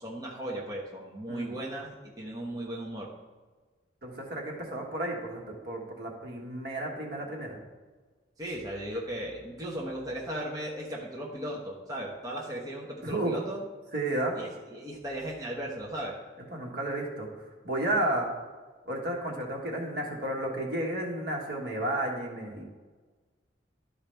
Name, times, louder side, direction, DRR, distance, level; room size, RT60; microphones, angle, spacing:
voice 1, 0.0-3.1 8.4-13.7 14.3-16.1, right 1 dB, 20° right, -3 dB, 1.1 m, -37 dB
voice 2, 4.0-7.6 13.0-13.3 13.9-14.4 16.5-18.3 18.9-22.6, right 1 dB, 60° right, -1 dB, 1.6 m, -32 dB
12.0 x 4.8 x 3.4 m, 1.4 s
head